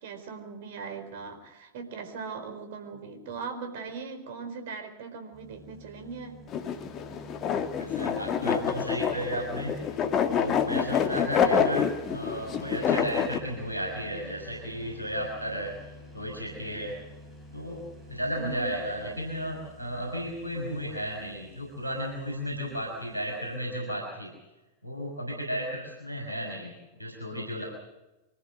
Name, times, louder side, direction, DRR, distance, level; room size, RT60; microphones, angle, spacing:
voice 1, 0.0-6.4 18.3-18.7, right 5 dB, 55° right, 6 dB, 4.5 m, -39 dB
sound 1, 5.3-23.6, left 1 dB, 10° right, 6.4 m, -49 dB
sound 2, 6.5-13.4, left 7 dB, 30° left, 1.9 m, -27 dB
voice 2, 7.7-10.0 10.3-15.8 16.1-16.9 17.5-17.8 18.1-24.3 24.8-26.7 27.0-27.6, equal, 85° right, -1 dB, 5.8 m, -34 dB
25.5 x 14.5 x 8.0 m, 1.0 s
figure-of-eight pair, 90°, 0 cm